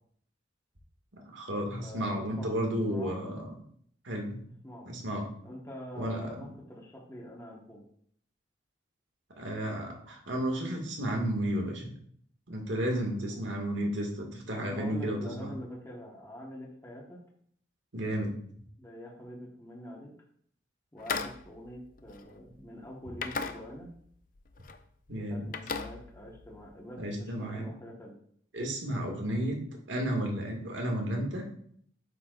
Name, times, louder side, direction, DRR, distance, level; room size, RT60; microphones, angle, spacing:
voice 1, 1.1-3.5 4.0-4.4 4.9-5.3 6.0-6.5 9.4-11.9 12.5-15.5 17.9-18.3 25.1-25.5 27.0-27.7 28.5-31.5, right 1 dB, 80° right, 1 dB, 2.0 m, -32 dB
voice 2, 1.8-2.6 2.9-3.1 4.6-4.9 5.4-7.8 13.3-13.6 14.5-17.2 18.8-20.1 20.9-23.9 25.3-28.1 29.2-29.5, equal, 15° left, -4 dB, 1.3 m, -45 dB
sound 1, 21.0-22.7 23.1-24.1 24.3-24.8 25.1-26.7, left 5 dB, 45° left, 0.5 m, -38 dB
8.9 x 6.9 x 2.5 m, 0.62 s
head